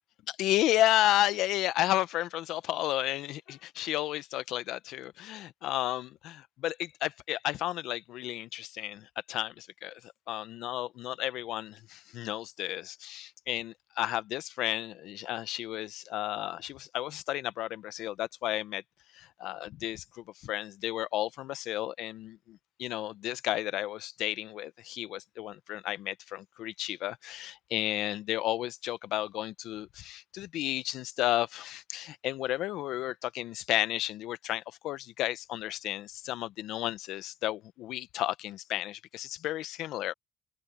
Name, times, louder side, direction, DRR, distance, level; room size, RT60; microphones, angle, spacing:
voice 1, 0.3-10.0 10.3-18.8 19.1-40.1, left 14 dB, 80° left, 0.9 m, -32 dB
open air
supercardioid pair, 60°, 0 cm